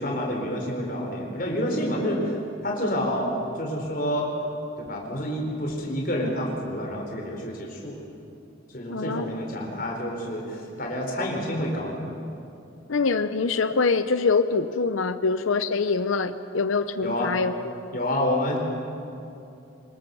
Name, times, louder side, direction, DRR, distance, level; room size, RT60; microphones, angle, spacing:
voice 1, 0.0-2.3 2.6-4.3 4.8-8.0 8.7-12.1 17.0-17.3 17.9-18.6, equal, 45° left, 0 dB, 4.4 m, -28 dB
voice 2, 8.9-9.3 12.9-17.5, left 4 dB, 85° left, 11 dB, 0.7 m, -24 dB
25.0 x 21.5 x 7.1 m, 2.7 s
head